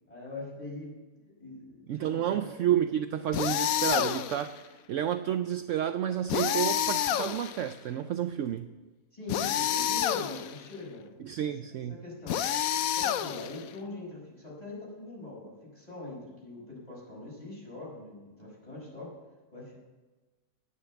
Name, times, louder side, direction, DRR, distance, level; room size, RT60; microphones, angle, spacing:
voice 1, 0.1-2.5 9.1-11.1 11.4-12.4 12.8-19.1 19.5-19.8, left 2 dB, 25° left, -4 dB, 5.5 m, -42 dB
voice 2, 1.9-8.7 11.2-12.0, right 10 dB, 75° right, 9 dB, 0.7 m, -30 dB
sound 1, 3.3-4.5 6.3-7.7 9.3-10.6 12.3-13.7, left 10 dB, 70° left, 0.9 m, -29 dB
11.0 x 9.6 x 7.0 m, 1.3 s
omnidirectional pair, 1.8 m